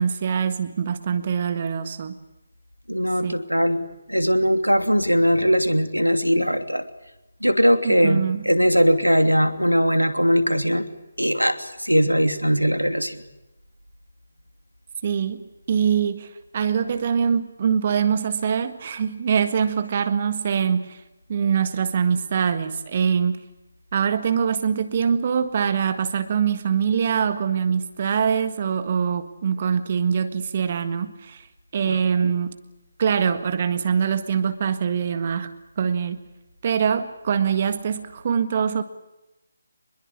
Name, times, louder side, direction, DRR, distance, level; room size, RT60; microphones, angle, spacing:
voice 1, 0.0-2.2 3.2-3.4 7.8-8.5 15.0-21.0 21.3-23.4 23.9-31.5 31.7-32.5 33.0-35.5 35.8-36.2 36.6-38.8, right 7 dB, 35° right, 10 dB, 1.6 m, -23 dB
voice 2, 2.9-6.8 7.4-10.8 11.2-13.2 31.8-32.0, equal, 90° right, 9 dB, 2.8 m, -20 dB
25.5 x 22.0 x 8.5 m, 0.95 s
figure-of-eight pair, 150°, 0 cm